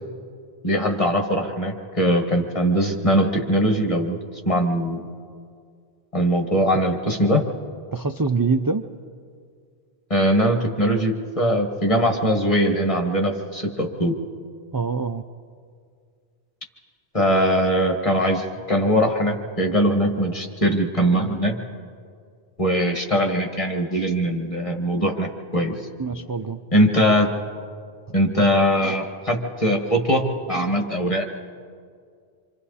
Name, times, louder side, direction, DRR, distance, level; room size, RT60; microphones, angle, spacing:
voice 1, 0.6-5.1 6.1-7.4 10.1-14.1 17.1-21.5 22.6-25.7 26.7-27.3 28.1-31.2, equal, 30° left, 2 dB, 2.0 m, -21 dB
voice 2, 7.9-8.8 14.7-15.2 26.0-26.6, right 4 dB, 30° right, 6 dB, 0.4 m, -24 dB
26.5 x 26.0 x 4.2 m, 2.1 s
omnidirectional pair, 1.1 m